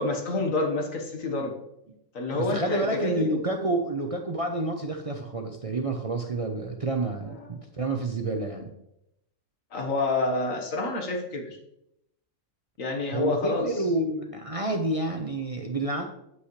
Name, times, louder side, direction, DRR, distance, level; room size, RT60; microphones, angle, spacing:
voice 1, 0.0-1.6 2.1-3.4 9.7-11.6 12.8-13.7, left 2 dB, 75° left, 2 dB, 1.8 m, -28 dB
voice 2, 2.3-8.7 13.1-16.0, right 2 dB, 35° right, 3 dB, 0.6 m, -29 dB
8.6 x 8.1 x 3.2 m, 0.80 s
omnidirectional pair, 1.4 m